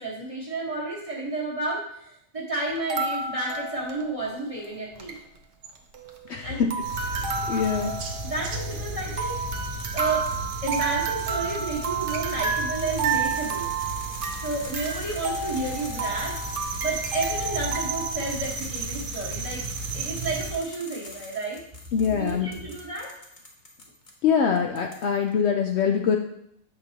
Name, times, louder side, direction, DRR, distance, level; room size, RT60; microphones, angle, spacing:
voice 1, 0.0-5.2 6.4-6.6 8.3-9.4 9.9-10.2 10.6-13.7 14.4-16.4 16.8-19.6 19.9-21.6 22.2-23.1, right 3 dB, 25° right, -5 dB, 1.2 m, -31 dB
sound 1, 2.7-4.4 4.6-4.7 4.9-5.2 5.6-6.4 6.7-18.1, right 5 dB, 50° right, 0.7 m, -31 dB
voice 2, 6.3-6.7 7.1-7.2 7.5-8.0 21.9-22.5 24.2-26.2, left 7 dB, 65° left, 3 dB, 0.7 m, -23 dB
sound 2, 6.8-20.5, right 3 dB, 75° right, 1.2 m, -34 dB
sound 3, 7.6-8.0 8.7-24.1 24.6-25.3, left 2 dB, 35° left, 1.0 m, -44 dB
7.5 x 5.1 x 2.8 m, 0.73 s
omnidirectional pair, 1.5 m